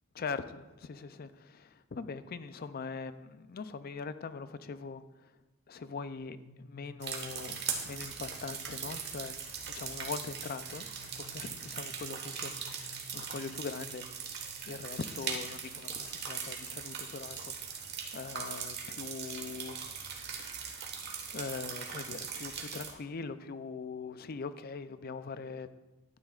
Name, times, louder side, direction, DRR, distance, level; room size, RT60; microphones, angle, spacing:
voice 1, 0.1-5.4 5.7-9.4 9.7-14.0 14.7-19.8 20.1-20.7 21.3-25.7, left 4 dB, 50° left, 13 dB, 0.4 m, -42 dB
sound 1, 6.2-16.0, left 2 dB, 70° left, 2.1 m, -57 dB
sound 2, 7.0-22.9, right 6 dB, 55° right, 1.3 m, -40 dB
12.0 x 9.6 x 2.4 m, 1.1 s
head